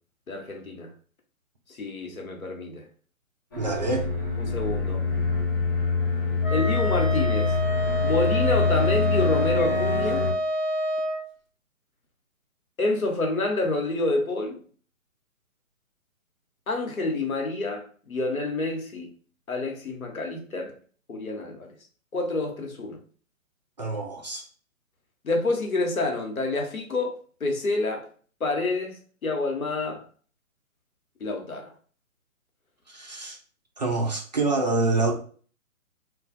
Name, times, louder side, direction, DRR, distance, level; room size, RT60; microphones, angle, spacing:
voice 1, 0.3-0.9 1.7-2.8 4.4-5.0 6.5-7.5 8.0-10.3 12.8-14.6 16.7-19.1 19.5-20.7 21.1-21.7 22.1-23.0 25.2-27.1 27.4-28.1 28.4-30.0 31.2-31.7, left 2 dB, 80° left, 1.0 m, -28 dB
sound 1, 3.5-10.3, left 4 dB, 15° left, 0.6 m, -25 dB
voice 2, 3.6-4.1 23.8-24.5 32.9-33.4 33.8-35.1, right 3 dB, 35° right, 0.5 m, -26 dB
Wind instrument woodwind instrument, 6.4-11.2, equal, 40° left, 1.0 m, -28 dB
2.5 x 2.3 x 4.0 m
figure-of-eight pair, 135°, 42 cm